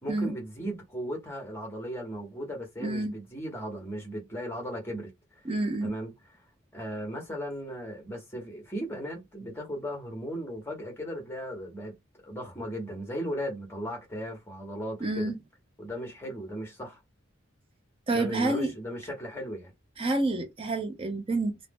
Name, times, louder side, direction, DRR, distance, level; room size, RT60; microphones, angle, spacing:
voice 1, 0.0-5.1 5.8-6.1 6.7-12.0 12.2-15.3 15.8-17.0 18.1-19.7, equal, 10° left, 1.0 m, -36 dB
voice 2, 2.8-3.1 5.4-5.9 15.0-15.4 18.1-18.7 20.0-21.7, right 2 dB, 25° right, 0.6 m, -28 dB
2.6 x 2.0 x 3.5 m
head